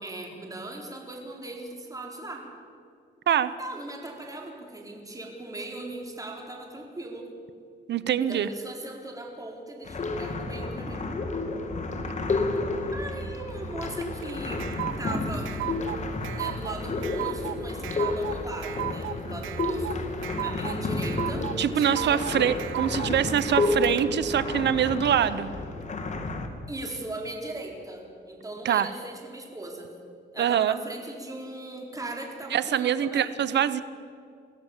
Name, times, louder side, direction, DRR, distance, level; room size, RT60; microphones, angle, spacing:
voice 1, 0.0-2.5 3.6-7.3 8.2-11.1 12.9-14.7 15.0-15.6 16.3-20.1 20.4-21.5 21.7-22.2 26.7-29.9 30.3-33.3, right 2 dB, 15° right, 1 dB, 4.3 m, -39 dB
voice 2, 7.9-8.5 21.6-25.5 28.6-28.9 30.4-30.7 32.5-33.8, right 9 dB, 60° right, 15 dB, 1.0 m, -24 dB
sound 1, 9.9-26.5, left 3 dB, 35° left, 2.5 m, -31 dB
sound 2, 14.0-24.0, right 14 dB, 75° right, 0.6 m, -35 dB
22.5 x 15.5 x 7.4 m, 2.3 s
cardioid pair, 90°, 20 cm